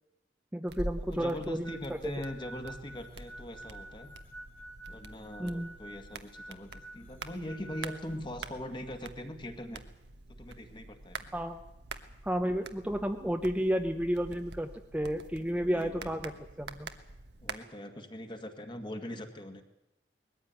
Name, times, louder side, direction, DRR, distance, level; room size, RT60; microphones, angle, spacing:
voice 1, 0.5-2.0 5.4-5.7 11.3-11.6 12.2-16.3 16.6-16.9, equal, 5° right, 5 dB, 0.8 m, -32 dB
sound 1, 0.7-17.6, right 3 dB, 70° right, 1.2 m, -46 dB
voice 2, 1.1-4.1 4.9-9.8 10.4-11.2 15.4-16.3 17.4-19.6, left 1 dB, 25° left, 5 dB, 1.9 m, -41 dB
sound 2, 1.6-8.2, right 1 dB, 10° left, 2.1 m, -49 dB
20.5 x 14.5 x 9.4 m, 0.93 s
head